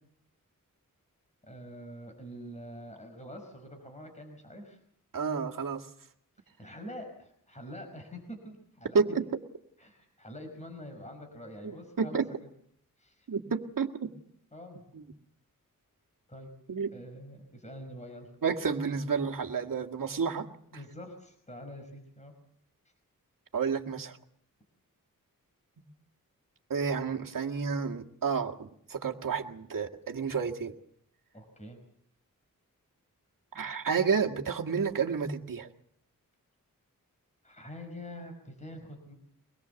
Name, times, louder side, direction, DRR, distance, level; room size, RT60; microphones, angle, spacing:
voice 1, 1.4-4.8 6.6-9.0 9.8-12.2 13.0-13.3 14.5-14.8 16.3-16.5 16.9-18.3 20.7-22.3 31.3-31.8 37.4-39.1, equal, 20° left, 4 dB, 5.2 m, -45 dB
voice 2, 5.1-5.9 8.9-9.3 11.6-12.3 13.3-14.1 14.9-15.0 16.7-16.9 18.4-20.5 23.5-24.2 26.7-30.7 33.5-35.7, right 5 dB, 70° right, 2 dB, 1.9 m, -30 dB
24.5 x 21.0 x 7.0 m, 0.68 s
wide cardioid pair, 90°, 34 cm